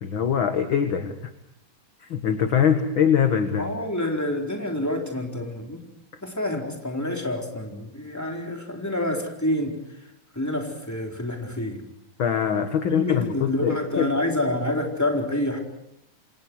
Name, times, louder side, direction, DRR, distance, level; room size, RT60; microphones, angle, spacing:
voice 1, 0.0-1.1 2.0-3.7 12.2-14.1, left 8 dB, 50° left, 7 dB, 1.6 m, -23 dB
voice 2, 3.6-5.8 6.2-9.8 10.3-11.8 12.9-15.6, left 1 dB, 5° left, 1 dB, 3.9 m, -27 dB
29.0 x 26.5 x 4.8 m, 0.78 s
omnidirectional pair, 3.9 m